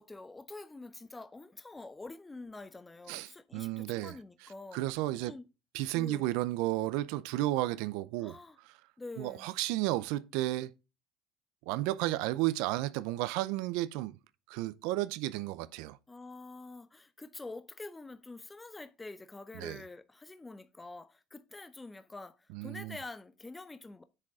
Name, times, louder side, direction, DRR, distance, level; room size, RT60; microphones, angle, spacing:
voice 1, 0.0-4.8 5.3-5.4 5.9-6.3 8.2-8.6 9.0-9.5 16.1-24.0, left 3 dB, 15° left, 0.6 m, -46 dB
voice 2, 3.1-4.2 4.7-5.3 5.7-8.4 8.7-8.8 9.2-10.7 11.7-14.2 14.5-16.0 19.5-19.8 22.5-23.0, right 16 dB, 75° right, 0.5 m, -33 dB
7.5 x 6.4 x 3.6 m
supercardioid pair, 85°, 0 cm